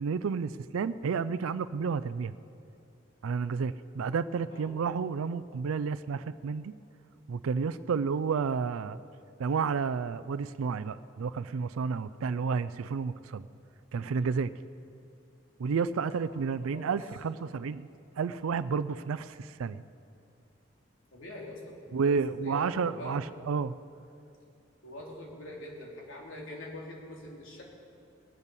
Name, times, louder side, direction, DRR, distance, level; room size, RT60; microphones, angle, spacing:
voice 1, 0.0-2.3 3.2-6.7 7.3-9.0 9.4-13.5 13.9-14.5 15.6-17.9 18.2-19.8 21.9-23.7, right 5 dB, 90° right, 14 dB, 0.4 m, -31 dB
voice 2, 16.3-16.9 21.1-23.2 24.8-27.6, left 1 dB, 75° left, -2 dB, 3.1 m, -44 dB
20.0 x 8.2 x 6.9 m, 2.6 s
head